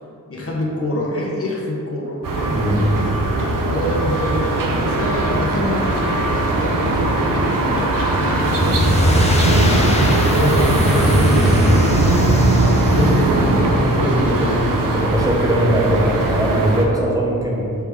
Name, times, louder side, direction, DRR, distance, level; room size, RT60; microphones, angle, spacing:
voice 1, 0.3-2.7 3.7-7.9 8.4-9.8 10.3-11.7 12.9-14.6, left 1 dB, 45° left, -3 dB, 1.0 m, -25 dB
sound 1, 2.2-16.9, right 2 dB, 90° right, 0.7 m, -20 dB
voice 2, 2.5-3.0 14.9-17.8, right 1 dB, 10° right, -4 dB, 0.9 m, -20 dB
sound 2, 8.3-13.6, left 1 dB, 20° left, 0.7 m, -19 dB
5.9 x 3.5 x 4.8 m, 2.8 s
wide cardioid pair, 90°, 32 cm